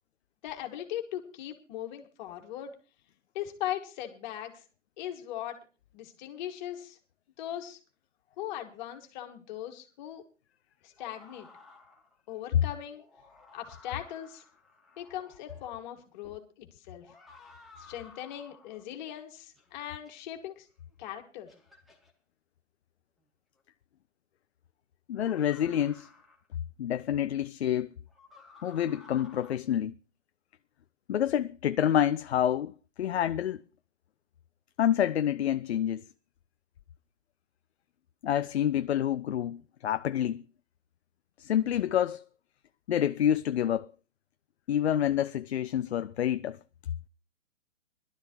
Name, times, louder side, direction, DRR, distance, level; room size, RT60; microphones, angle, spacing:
voice 1, 0.4-2.8 3.3-4.6 5.0-5.6 5.9-7.0 7.4-7.8 8.4-10.2 10.8-11.5 12.3-13.0 13.5-14.4 15.0-17.1 17.8-20.7 21.0-21.5, left 12 dB, 35° left, 2.3 m, -39 dB
sound 1, 11.0-12.2 12.9-15.7 17.0-18.9 19.6-20.1 20.9-21.0 21.5-22.1 23.6-23.7 25.2-26.5 28.1-29.5, left 3 dB, ahead, 1.8 m, -55 dB
voice 2, 25.1-26.1 26.8-27.9 28.6-29.9 31.1-33.6 34.8-36.0 38.2-40.4 41.4-42.2 42.9-43.9 44.7-46.6, left 10 dB, 60° left, 0.6 m, -28 dB
21.0 x 12.0 x 3.1 m
figure-of-eight pair, 120°, 38 cm